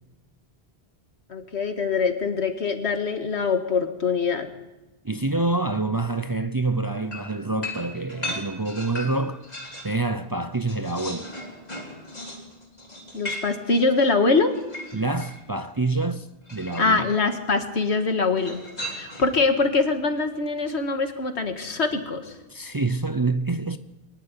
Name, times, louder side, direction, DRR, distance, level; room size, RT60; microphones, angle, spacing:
voice 1, 1.3-4.5 13.1-14.5 16.8-18.6 18.9-22.3, left 4 dB, 90° left, 2.0 m, -23 dB
voice 2, 5.0-9.4 9.8-11.3 14.9-17.1 22.5-23.8, right 3 dB, 25° right, 0.5 m, -26 dB
sound 1, 7.1-10.0 10.4-15.4 16.5-17.1 18.4-19.4, left 1 dB, 40° left, 3.5 m, -37 dB
22.5 x 11.5 x 10.0 m
omnidirectional pair, 1.1 m